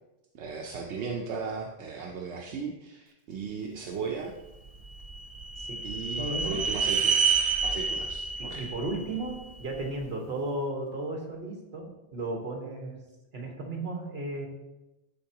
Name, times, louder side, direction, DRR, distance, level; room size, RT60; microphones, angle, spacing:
voice 1, 0.3-4.3 5.8-7.3 7.6-8.6, right 5 dB, 85° right, 1 dB, 1.0 m, -36 dB
sound 1, 4.7-9.9, right 5 dB, 40° right, 0.6 m, -29 dB
voice 2, 5.6-5.9 6.2-6.6 8.4-13.0 13.3-14.5, right 2 dB, 65° right, 1 dB, 1.6 m, -34 dB
12.0 x 4.5 x 2.9 m, 0.98 s
omnidirectional pair, 1.1 m